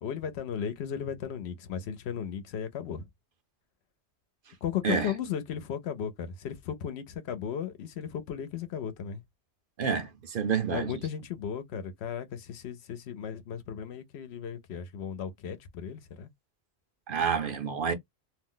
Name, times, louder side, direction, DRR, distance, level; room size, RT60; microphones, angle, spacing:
voice 1, 0.0-3.1 4.6-9.2 10.7-16.3, left 8 dB, 75° left, 0.8 m, -35 dB
voice 2, 9.8-10.9 17.1-17.9, right 6 dB, 60° right, 0.7 m, -28 dB
2.5 x 2.0 x 3.7 m
omnidirectional pair, 1.1 m